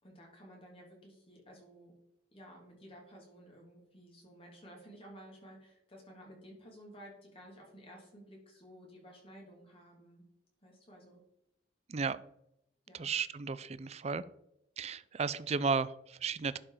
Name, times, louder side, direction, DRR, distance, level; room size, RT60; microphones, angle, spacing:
voice 1, 0.0-1.9 2.3-10.2 10.6-11.2 12.9-13.1, equal, 30° left, -1 dB, 3.0 m, -54 dB
voice 2, 12.9-14.2 14.8-16.6, right 5 dB, 35° right, 16 dB, 0.4 m, -34 dB
11.0 x 5.1 x 4.9 m, 0.79 s
head